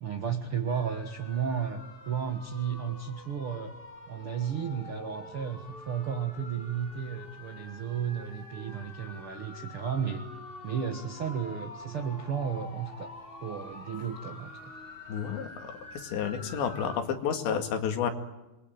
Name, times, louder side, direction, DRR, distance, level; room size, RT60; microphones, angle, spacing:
voice 1, 0.0-3.8 4.1-10.2 10.6-13.1 13.4-14.7, right 7 dB, 75° right, 7 dB, 1.2 m, -33 dB
sound 1, 0.7-17.0, left 2 dB, 25° left, 1.2 m, -47 dB
voice 2, 15.1-18.1, left 7 dB, 80° left, 6 dB, 4.4 m, -31 dB
27.5 x 22.5 x 9.3 m, 0.99 s
omnidirectional pair, 5.1 m